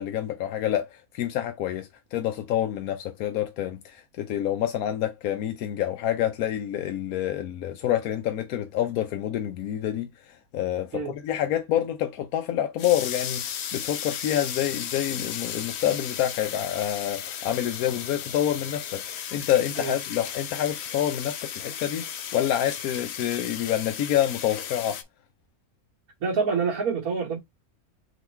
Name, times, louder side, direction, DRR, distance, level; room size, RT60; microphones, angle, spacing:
voice 1, 0.0-25.0, left 11 dB, 80° left, 1.1 m, -27 dB
sound 1, 12.8-25.0, left 9 dB, 60° left, 0.7 m, -35 dB
voice 2, 26.2-27.4, right 5 dB, 70° right, 1.5 m, -26 dB
3.8 x 3.0 x 4.3 m
omnidirectional pair, 1.5 m